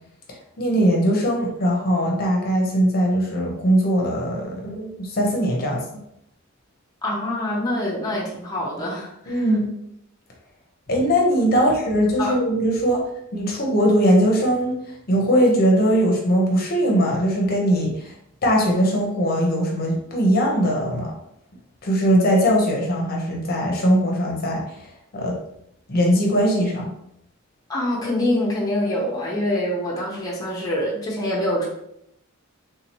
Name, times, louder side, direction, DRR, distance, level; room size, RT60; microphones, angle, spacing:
voice 1, 0.6-5.8 9.3-9.7 10.9-13.0 13.3-14.7 15.1-18.1 18.4-21.1 21.8-24.9 25.1-25.4 25.9-26.9, equal, 45° left, -1 dB, 0.7 m, -20 dB
voice 2, 7.0-9.5 12.2-12.4 12.9-13.0 27.7-31.7, left 1 dB, 20° left, -5 dB, 0.7 m, -25 dB
3.6 x 2.8 x 2.9 m, 0.76 s
head